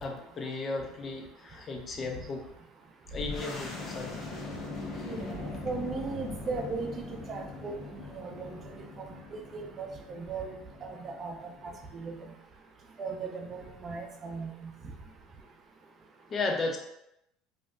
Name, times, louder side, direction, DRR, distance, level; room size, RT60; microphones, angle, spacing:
voice 1, 0.0-2.4 3.1-4.1 16.3-16.8, left 3 dB, 35° left, 3 dB, 0.5 m, -34 dB
sound 1, 3.1-12.3, left 2 dB, 50° left, 1.0 m, -41 dB
voice 2, 5.1-6.9 7.3-7.7 8.1-8.7 9.5-10.6 10.8-11.4 11.6-12.2 13.0-14.7, right 4 dB, 35° right, 4 dB, 0.5 m, -37 dB
3.2 x 2.5 x 2.5 m, 0.82 s
supercardioid pair, 95°, 0 cm